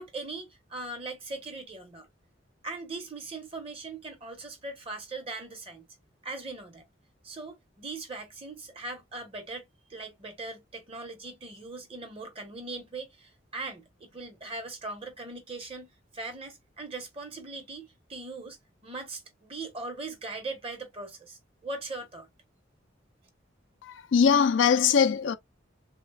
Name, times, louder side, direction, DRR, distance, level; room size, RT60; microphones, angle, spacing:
voice 1, 0.0-2.1 2.6-5.9 6.2-6.9 7.2-22.3, right 3 dB, 30° right, 0.9 m, -40 dB
voice 2, 23.8-25.4, left 6 dB, 70° left, 0.4 m, -22 dB
3.3 x 2.2 x 2.3 m
head